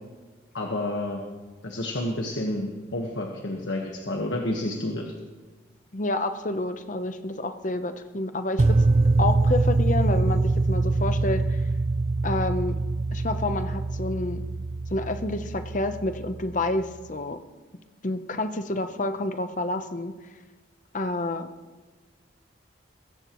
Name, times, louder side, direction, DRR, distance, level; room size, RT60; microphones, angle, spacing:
voice 1, 0.5-1.2 1.6-5.1, left 1 dB, 75° left, 0 dB, 1.4 m, -30 dB
voice 2, 5.9-8.8 9.2-10.4 10.7-11.6 12.2-12.8 13.1-14.4 14.9-17.4 18.0-20.1 20.9-21.5, left 2 dB, 40° left, 9 dB, 0.8 m, -29 dB
sound 1, 8.6-16.7, right 3 dB, 35° right, 0.4 m, -24 dB
21.5 x 15.5 x 3.1 m, 1.3 s
head